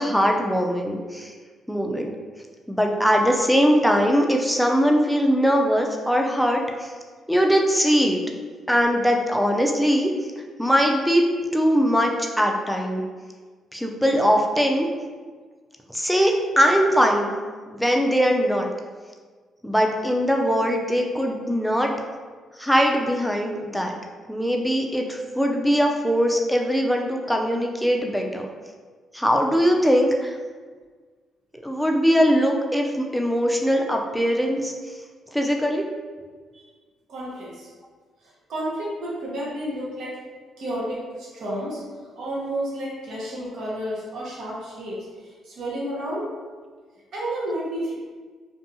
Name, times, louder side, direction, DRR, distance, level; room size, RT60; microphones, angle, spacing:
voice 1, 0.0-1.3 1.7-2.1 2.7-6.9 7.3-8.2 8.7-10.1 10.6-11.2 11.5-13.0 13.7-14.9 15.9-17.3 17.7-18.7 19.6-21.9 22.6-23.9 24.3-28.5 29.1-30.4 31.6-34.7 35.3-35.9, equal, ahead, 1 dB, 0.4 m, -21 dB
voice 2, 37.1-37.7 38.2-40.2 40.6-41.8 42.2-46.3 47.1-47.9, right 1 dB, 75° right, -6 dB, 0.8 m, -31 dB
2.7 x 2.3 x 2.6 m, 1.5 s
cardioid pair, 90°, 0 cm